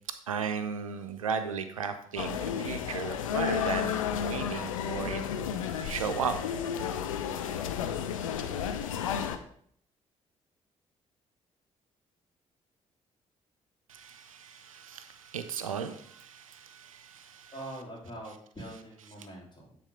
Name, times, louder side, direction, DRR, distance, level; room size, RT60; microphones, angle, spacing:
voice 1, 0.3-6.4 13.9-17.5, right 6 dB, 85° right, 9 dB, 0.4 m, -36 dB
sound 1, 2.2-9.4, left 8 dB, 80° left, 0.5 m, -32 dB
voice 2, 17.5-19.8, right 1 dB, 25° left, -3 dB, 3.2 m, -43 dB
9.1 x 3.7 x 4.9 m, 0.63 s
figure-of-eight pair, 40°, 17 cm